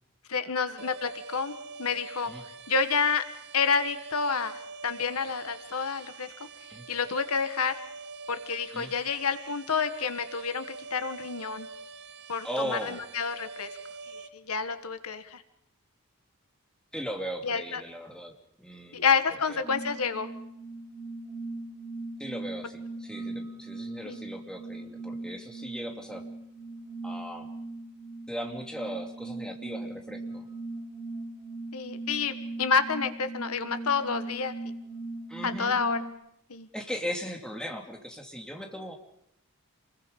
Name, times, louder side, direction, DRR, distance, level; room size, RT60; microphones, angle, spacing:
voice 1, 0.3-1.5 1.8-2.3 2.7-3.2 3.5-6.3 6.9-7.7 8.3-11.7 12.3-13.7 14.1-15.4 17.4-17.8 18.9-20.3 24.0-24.2 31.7-34.5 35.4-36.0 36.5-36.7, left 5 dB, 80° left, 9 dB, 1.6 m, -29 dB
sound 1, 0.8-14.3, right 4 dB, 50° right, 1.6 m, -45 dB
voice 2, 12.4-13.1 16.9-18.3 18.6-19.1 19.5-19.6 22.2-26.3 27.0-27.5 28.3-30.5 35.3-35.8 36.7-38.9, equal, 5° left, 1 dB, 2.8 m, -38 dB
sound 2, 19.6-36.1, right 2 dB, 15° right, 7.9 m, -39 dB
29.0 x 21.5 x 5.4 m, 0.78 s
head